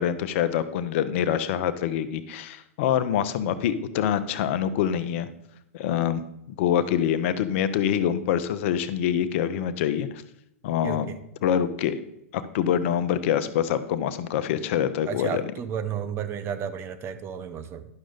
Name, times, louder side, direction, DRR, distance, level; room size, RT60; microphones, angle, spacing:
voice 1, 0.0-5.3 5.7-6.2 6.6-10.2 10.6-11.1 11.4-12.0 12.3-15.4, left 9 dB, 55° left, 12 dB, 0.7 m, -25 dB
voice 2, 10.8-11.2 15.1-17.9, right 8 dB, 30° right, 10 dB, 0.8 m, -32 dB
10.5 x 6.3 x 3.9 m, 0.80 s
hypercardioid pair, 110°, 8 cm